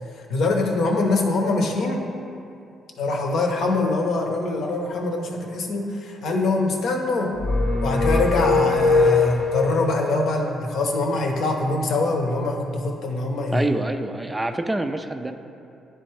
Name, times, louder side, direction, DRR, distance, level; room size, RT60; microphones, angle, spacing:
voice 1, 0.3-2.0 3.0-7.3 7.8-13.7, left 2 dB, 75° left, 2 dB, 0.8 m, -23 dB
sound 1, 7.4-9.8, left 3 dB, 45° left, 0.8 m, -20 dB
voice 2, 13.5-15.3, right 2 dB, 15° right, 7 dB, 0.3 m, -26 dB
10.0 x 3.4 x 3.2 m, 2.6 s
cardioid pair, 90°, 0 cm